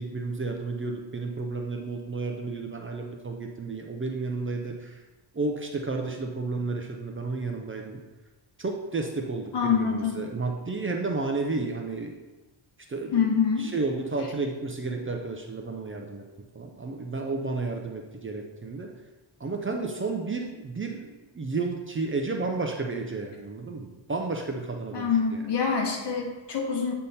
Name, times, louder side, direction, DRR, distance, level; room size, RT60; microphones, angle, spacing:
voice 1, 0.0-5.0 5.3-8.0 8.6-12.1 12.9-16.2 16.5-18.9 19.4-21.1 21.3-25.4, right 3 dB, 25° right, 2 dB, 0.6 m, -32 dB
voice 2, 9.5-10.2 13.1-13.7 24.9-26.9, left 6 dB, 60° left, 0 dB, 1.4 m, -25 dB
8.0 x 3.7 x 4.2 m, 1.1 s
wide cardioid pair, 125°, 47 cm